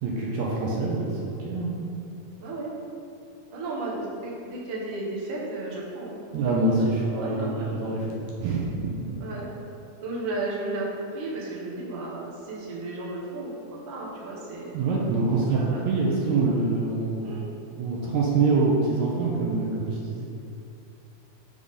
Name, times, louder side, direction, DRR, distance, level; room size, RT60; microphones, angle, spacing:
voice 1, 0.0-1.8 6.3-8.0 8.4-9.1 14.7-17.2 17.7-20.2, right 3 dB, 75° right, -3 dB, 1.9 m, -25 dB
voice 2, 2.4-2.7 3.5-6.2 7.1-7.7 9.2-9.5 10.0-14.7 15.5-15.9 17.2-17.4, right 2 dB, 60° right, -5 dB, 1.2 m, -34 dB
5.5 x 3.6 x 5.2 m, 2.6 s
omnidirectional pair, 3.6 m